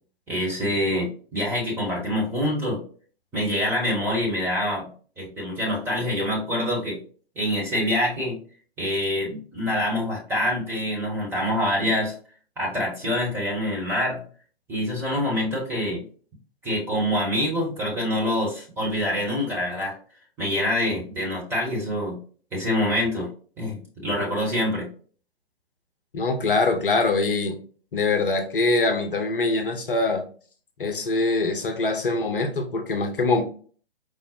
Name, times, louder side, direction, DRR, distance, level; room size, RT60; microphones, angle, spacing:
voice 1, 0.3-2.8 3.3-4.9 5.2-7.0 7.3-8.4 8.8-12.1 12.6-14.2 14.7-16.0 16.6-20.0 20.4-22.2 22.5-23.3 23.6-24.9, left 1 dB, 5° right, -5 dB, 0.9 m, -25 dB
voice 2, 26.1-27.6 27.9-30.2 30.8-33.4, left 3 dB, 55° left, 6 dB, 0.8 m, -23 dB
4.9 x 2.0 x 4.2 m, 0.42 s
figure-of-eight pair, 130°, 32 cm